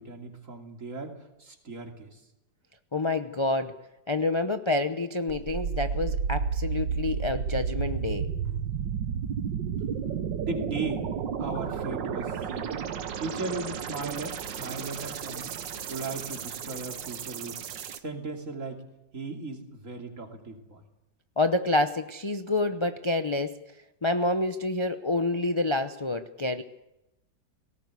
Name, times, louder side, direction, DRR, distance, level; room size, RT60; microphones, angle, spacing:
voice 1, 0.0-2.2 7.1-7.3 8.2-9.2 9.7-10.0 10.4-11.1 11.4-12.8 13.2-15.5 15.9-17.6 18.0-18.8 19.1-20.8, right 3 dB, 45° right, 3 dB, 3.1 m, -37 dB
voice 2, 2.9-3.8 4.1-8.3 21.4-23.6 24.0-26.6, left 2 dB, 35° left, 8 dB, 0.4 m, -28 dB
sound 1, 5.3-18.0, right 7 dB, 80° right, 1.8 m, -32 dB
19.0 x 18.0 x 8.3 m, 0.92 s
omnidirectional pair, 1.9 m